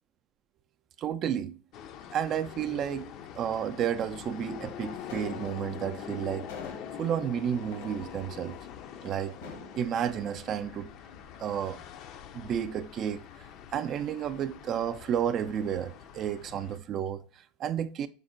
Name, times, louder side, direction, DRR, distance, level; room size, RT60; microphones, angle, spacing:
voice 1, 1.0-1.6 2.1-3.1 3.4-6.5 7.0-8.6 9.0-9.4 9.8-10.9 11.4-11.8 12.3-13.2 13.7-18.1, right 9 dB, 45° right, 0.3 m, -31 dB
sound 1, 1.7-16.8, left 9 dB, 55° left, 0.4 m, -44 dB
sound 2, 5.0-10.5, left 4 dB, 80° left, 0.9 m, -47 dB
5.1 x 2.1 x 3.7 m
supercardioid pair, 110°, 0 cm